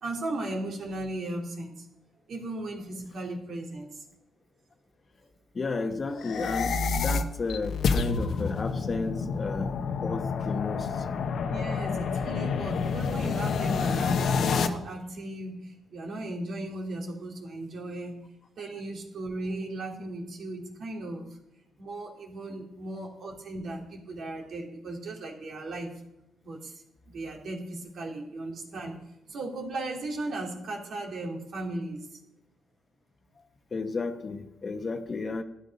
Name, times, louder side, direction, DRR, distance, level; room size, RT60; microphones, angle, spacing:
voice 1, 0.0-1.9 2.3-4.0 11.5-18.2 18.6-21.3 21.8-25.9 26.4-29.0 29.3-32.2, right 2 dB, 60° right, 2.9 m, -36 dB
voice 2, 5.5-11.1 11.8-12.0 33.7-35.4, left 3 dB, 35° left, 1.1 m, -33 dB
sound 1, 6.2-14.7, left 5 dB, 65° left, 0.9 m, -28 dB
12.5 x 10.0 x 5.3 m
cardioid pair, 90°, 0 cm